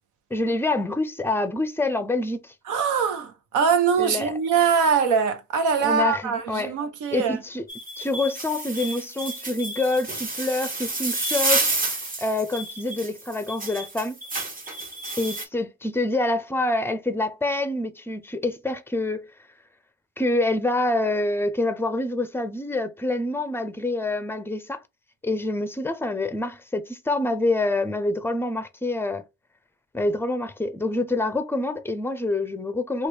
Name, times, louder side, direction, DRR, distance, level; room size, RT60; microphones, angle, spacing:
voice 1, 0.3-2.5 4.0-4.3 5.8-6.7 7.1-7.6 8.0-11.7 12.2-14.2 15.2-19.3 20.2-24.8 25.2-29.2 29.9-33.1, left 2 dB, 10° left, 0.5 m, -26 dB
voice 2, 2.7-7.4, right 6 dB, 85° right, 0.8 m, -22 dB
sound 1, 7.7-15.4, right 2 dB, 30° right, 1.1 m, -29 dB
3.0 x 2.4 x 3.3 m
cardioid pair, 90°, 30 cm